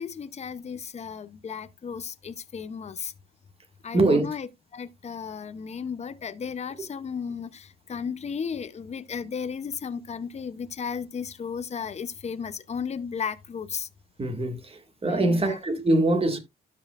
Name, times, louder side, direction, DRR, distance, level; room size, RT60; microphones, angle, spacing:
voice 1, 0.0-3.1 3.8-13.9 15.1-15.6, left 6 dB, 35° left, 0.7 m, -34 dB
voice 2, 3.9-4.3 14.2-16.4, right 2 dB, 30° right, 1.9 m, -23 dB
12.0 x 5.5 x 2.5 m
cardioid pair, 90°, 20 cm